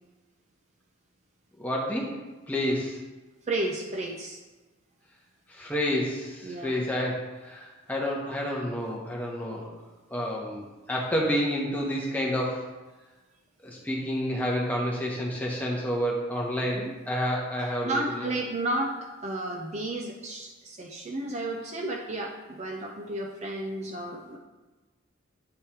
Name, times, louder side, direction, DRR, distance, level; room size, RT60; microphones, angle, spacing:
voice 1, 1.6-2.2 2.5-3.0 5.5-9.7 10.1-12.7 13.6-18.3, equal, 10° left, -3 dB, 0.9 m, -29 dB
voice 2, 3.5-4.4 6.4-6.7 16.6-17.0 17.8-24.4, right 2 dB, 35° right, 1 dB, 0.5 m, -32 dB
8.5 x 3.1 x 4.4 m, 1.2 s
head